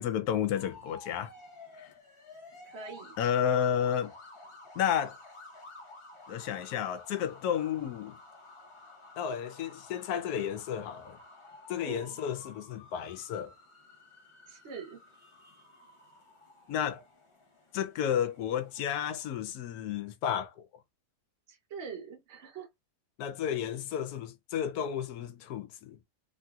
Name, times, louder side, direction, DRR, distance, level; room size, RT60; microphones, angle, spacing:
voice 1, 0.0-1.3 1.8-1.9 3.2-4.1 4.7-5.2 6.3-8.2 9.2-11.2 11.7-13.5 16.7-17.0 17.7-20.7 23.2-26.0, left 9 dB, 70° left, 1.1 m, -32 dB
sound 1, 0.5-19.4, left 2 dB, 30° left, 0.5 m, -53 dB
voice 2, 2.6-3.2 11.8-12.2 14.5-15.0 21.5-22.7, right 6 dB, 50° right, 1.0 m, -43 dB
3.1 x 2.7 x 2.3 m
omnidirectional pair, 1.8 m